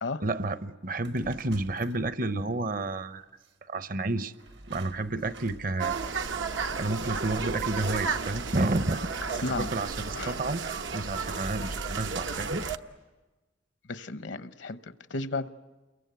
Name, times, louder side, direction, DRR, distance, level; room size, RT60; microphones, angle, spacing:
voice 1, 0.2-3.2 3.7-4.3 4.7-6.2 6.7-9.3 9.6-10.6 10.9-12.6, right 2 dB, 50° right, 13 dB, 0.8 m, -30 dB
sound 1, 1.0-2.5 3.4-3.5 4.3-6.5, right 2 dB, 65° right, 1.1 m, -49 dB
sound 2, 5.8-12.8, right 5 dB, 85° right, 1.0 m, -33 dB
voice 2, 13.9-14.8 15.1-15.5, left 3 dB, 75° left, 12 dB, 0.9 m, -33 dB
29.0 x 23.0 x 8.1 m, 1.2 s
head